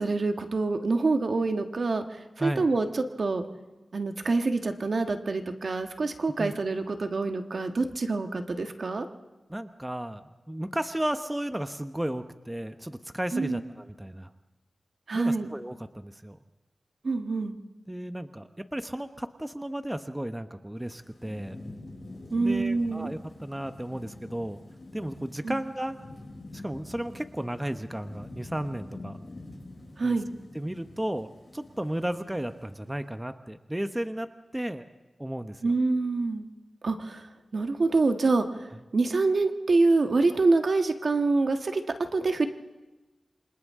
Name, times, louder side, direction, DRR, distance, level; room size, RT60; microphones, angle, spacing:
voice 1, 0.0-3.4 3.9-9.1 13.3-13.6 15.1-15.5 17.0-17.6 22.3-23.1 25.4-25.6 30.0-30.3 35.6-36.5 36.8-37.2 37.5-38.7 38.9-42.5, right 3 dB, 65° right, 5 dB, 1.5 m, -26 dB
voice 2, 9.5-14.3 15.1-16.4 17.9-21.6 22.4-24.6 24.9-26.0 26.5-29.2 30.0-30.2 30.5-34.3 34.5-34.8 35.2-35.7, right 1 dB, 10° right, 8 dB, 0.9 m, -34 dB
Thunderstorm / Rain, 20.8-33.0, left 2 dB, 40° left, 6.7 m, -46 dB
28.0 x 26.0 x 3.7 m, 1.2 s
wide cardioid pair, 70°, 0 cm